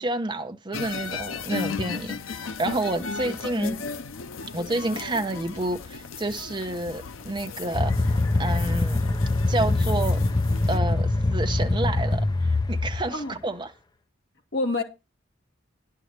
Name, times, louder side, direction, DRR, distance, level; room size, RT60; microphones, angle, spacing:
voice 1, 0.0-3.8 4.5-8.1 8.4-9.0 9.5-10.2 10.7-13.7, right 2 dB, 25° right, 0.9 m, -29 dB
sound 1, 0.7-10.8, left 5 dB, 80° left, 0.7 m, -36 dB
sound 2, 7.7-13.1, left 2 dB, 20° left, 0.5 m, -23 dB
voice 2, 14.5-14.8, left 2 dB, 60° left, 2.1 m, -28 dB
11.0 x 4.7 x 8.0 m
head